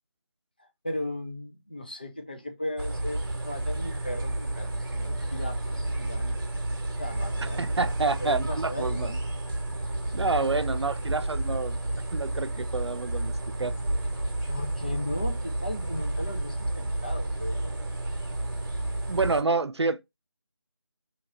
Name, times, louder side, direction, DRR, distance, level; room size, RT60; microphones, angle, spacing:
voice 1, 0.6-6.5 7.0-7.8 8.2-9.2 14.5-17.7, left 1 dB, 20° left, 0.3 m, -37 dB
sound 1, 2.8-19.4, right 1 dB, 50° right, 0.9 m, -31 dB
voice 2, 7.4-9.1 10.1-11.8 12.1-13.8 19.1-20.0, right 3 dB, 85° right, 0.5 m, -28 dB
2.9 x 2.7 x 3.5 m
figure-of-eight pair, 165°, 14 cm